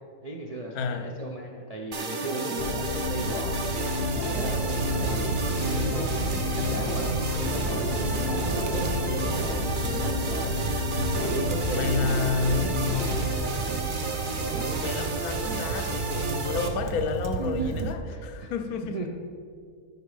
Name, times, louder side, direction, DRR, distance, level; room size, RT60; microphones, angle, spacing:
voice 1, 0.2-3.7 4.1-7.2 7.7-10.1 11.2-13.2 14.5-14.8 17.4-19.1, right 2 dB, 55° right, 0.4 m, -36 dB
voice 2, 0.7-1.1 11.7-12.7 14.4-19.0, left 4 dB, 75° left, 1.1 m, -30 dB
sound 1, 1.9-16.7, right 3 dB, 40° right, 0.9 m, -32 dB
sound 2, 2.6-13.4, left 3 dB, 55° left, 0.7 m, -30 dB
sound 3, 4.3-18.0, right 5 dB, 80° right, 1.2 m, -34 dB
11.0 x 5.2 x 4.8 m
omnidirectional pair, 1.6 m